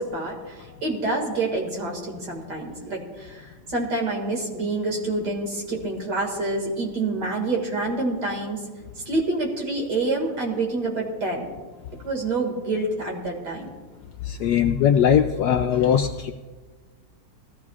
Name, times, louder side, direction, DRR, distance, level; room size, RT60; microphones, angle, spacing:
voice 1, 0.0-8.6 9.1-11.5 12.0-13.7, right 2 dB, 60° right, 0 dB, 2.7 m, -27 dB
voice 2, 14.3-16.3, left 8 dB, 75° left, 5 dB, 0.9 m, -20 dB
19.0 x 14.5 x 2.4 m, 1.4 s
omnidirectional pair, 2.1 m